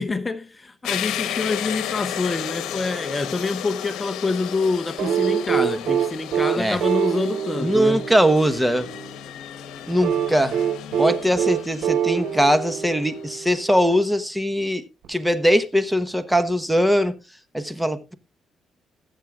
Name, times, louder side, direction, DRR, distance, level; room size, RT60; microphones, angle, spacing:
voice 1, 0.0-8.0, left 3 dB, 25° left, 0.8 m, -26 dB
sound 1, 0.8-13.5, left 11 dB, 85° left, 1.1 m, -34 dB
sound 2, 5.0-9.1 10.0-13.6 15.0-15.1, right 9 dB, 85° right, 4.4 m, -24 dB
voice 2, 7.6-8.9 9.9-10.6 11.0-17.2 17.5-18.2, equal, 5° right, 1.1 m, -21 dB
21.0 x 7.5 x 2.4 m
cardioid pair, 90°, 0 cm